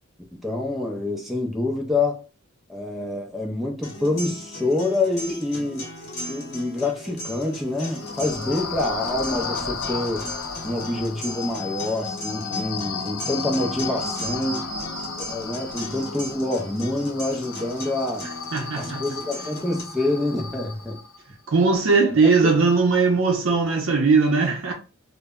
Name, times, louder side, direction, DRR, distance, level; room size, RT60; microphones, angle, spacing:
voice 1, 0.3-2.3 2.7-5.9 6.3-10.4 10.6-14.7 15.3-18.3 18.8-21.0 22.1-22.5, left 2 dB, ahead, 0.4 m, -27 dB
sound 1, 3.8-19.8, left 1 dB, 55° left, 0.9 m, -38 dB
sound 2, 7.8-21.2, left 4 dB, 80° left, 0.5 m, -33 dB
voice 2, 18.5-19.0 21.5-24.7, right 4 dB, 70° right, 0.5 m, -19 dB
2.0 x 2.0 x 3.5 m
head